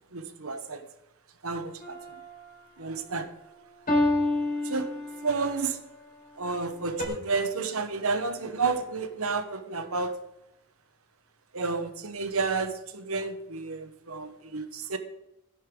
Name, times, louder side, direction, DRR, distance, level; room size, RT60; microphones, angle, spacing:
voice 1, 0.1-0.8 1.4-2.0 2.8-3.3 4.6-4.9 5.2-5.8 6.4-10.2 11.5-15.0, right 4 dB, 75° right, 8 dB, 1.2 m, -31 dB
sound 1, 1.8-2.5 3.9-5.5 7.0-7.1, left 1 dB, 40° left, 4.8 m, -28 dB
16.0 x 11.0 x 3.9 m, 0.87 s
head